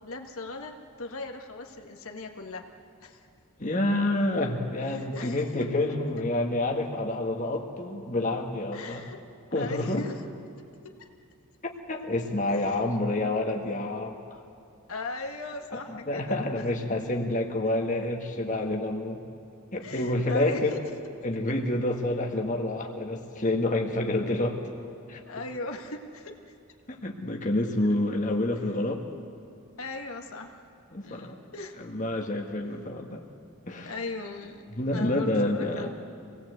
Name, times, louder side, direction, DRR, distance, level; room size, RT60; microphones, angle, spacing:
voice 1, 0.0-2.7 3.0-3.2 4.9-5.5 8.7-9.2 9.6-10.2 10.6-10.7 12.5-12.7 14.9-16.4 19.8-20.9 25.3-26.5 29.8-30.6 31.0-31.7 33.8-34.7 34.9-35.9, left 3 dB, 70° left, 3 dB, 1.7 m, -38 dB
voice 2, 3.6-9.0 9.5-10.0 11.6-14.2 16.1-19.2 19.7-20.7 21.2-24.6 25.1-25.2 26.9-29.0 30.9-31.4 31.8-33.2 33.7-33.9 34.8-35.9, left 1 dB, 35° left, 2 dB, 1.6 m, -28 dB
26.5 x 18.5 x 8.1 m, 2.4 s
head